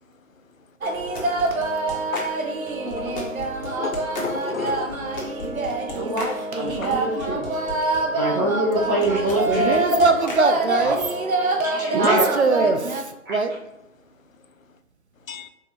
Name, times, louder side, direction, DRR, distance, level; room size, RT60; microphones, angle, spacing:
sound 1, 0.8-13.0, right 2 dB, 80° right, 0.9 m, -25 dB
sound 2, 0.9-8.0 8.7-11.0, left 2 dB, 30° left, 1.2 m, -37 dB
voice 1, 3.7-4.9 6.8-6.9 15.3-15.5, left 6 dB, 75° left, 9 dB, 0.6 m, -31 dB
voice 2, 5.9-7.4 8.1-9.8 10.8-10.9 11.6-12.2 13.3-13.4, right 1 dB, 15° right, -6 dB, 0.9 m, -24 dB
voice 3, 9.5-11.0 11.9-13.5, right 4 dB, 55° right, 7 dB, 0.5 m, -22 dB
4.3 x 3.4 x 2.9 m, 0.91 s
figure-of-eight pair, 150°, 41 cm